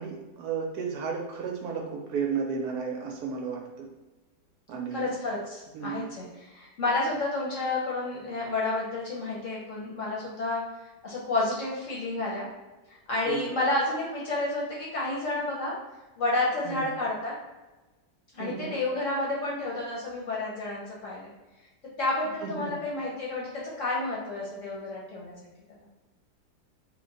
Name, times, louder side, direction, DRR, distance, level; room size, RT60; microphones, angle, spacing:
voice 1, 0.0-3.9 4.7-5.1 5.7-6.1 13.3-13.5 16.6-16.9 18.4-18.8 22.4-22.8, right 6 dB, 70° right, 0 dB, 1.0 m, -33 dB
voice 2, 4.9-10.6 11.0-12.5 12.9-15.7 16.2-17.3 18.3-21.3 22.0-25.3, left 2 dB, 60° left, -5 dB, 0.9 m, -30 dB
3.2 x 2.1 x 3.7 m, 1.2 s
omnidirectional pair, 1.8 m